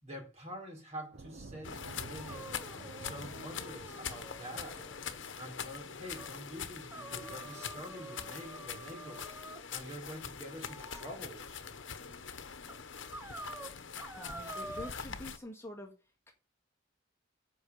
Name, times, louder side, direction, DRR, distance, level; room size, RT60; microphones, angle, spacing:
voice 1, 0.0-2.7 3.0-4.9 5.4-9.3 9.7-11.6, equal, 35° right, 3.9 m, -46 dB
sound 1, 1.1-9.9 11.0-11.1 11.4-12.3, right 3 dB, 55° right, 0.7 m, -54 dB
sound 2, 1.6-15.4, left 7 dB, 70° left, 1.1 m, -44 dB
sound 3, 2.2-5.2 5.5-5.6 6.2-6.3 6.9-9.6 10.6-11.2 12.0-12.1 12.7-12.8 13.1-14.9, right 1 dB, 10° right, 0.6 m, -48 dB
voice 2, 14.2-15.9, left 1 dB, 15° left, 1.7 m, -46 dB
8.6 x 5.5 x 6.7 m
head